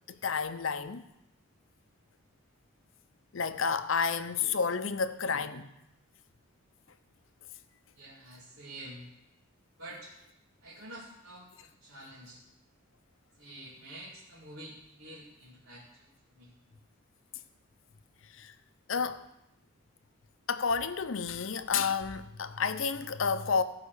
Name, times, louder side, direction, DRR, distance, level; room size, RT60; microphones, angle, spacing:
voice 1, 0.1-1.0 3.3-5.7 18.3-18.5 18.9-19.2 20.5-23.6, left 5 dB, 65° left, 0.6 m, -30 dB
voice 2, 7.9-9.1 9.8-10.1 10.6-12.4 13.4-16.5, right 1 dB, 80° right, 2.3 m, -48 dB
15.5 x 5.7 x 6.5 m
head